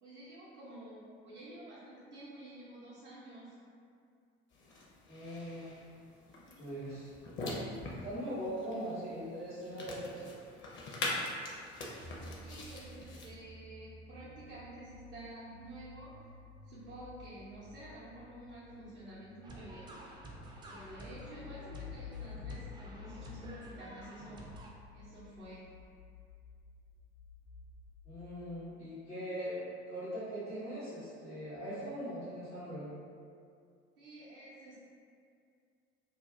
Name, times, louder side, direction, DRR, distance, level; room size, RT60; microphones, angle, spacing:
voice 1, 0.0-3.6 12.4-16.4 16.6-20.0 20.4-24.6 24.9-25.7 34.0-34.8, right 1 dB, 85° right, -11 dB, 0.6 m, -50 dB
sound 1, 4.5-13.3, left 2 dB, 35° left, 0.6 m, -43 dB
voice 2, 5.1-5.7 6.6-7.1 8.0-10.2 28.0-32.9, equal, 90° left, -17 dB, 1.0 m, -41 dB
sound 2, 12.0-28.4, left 5 dB, 60° left, 0.9 m, -52 dB
sound 3, 19.4-24.7, right 2 dB, 15° right, 0.3 m, -50 dB
2.5 x 2.3 x 3.1 m, 2.3 s
figure-of-eight pair, 60°, 34 cm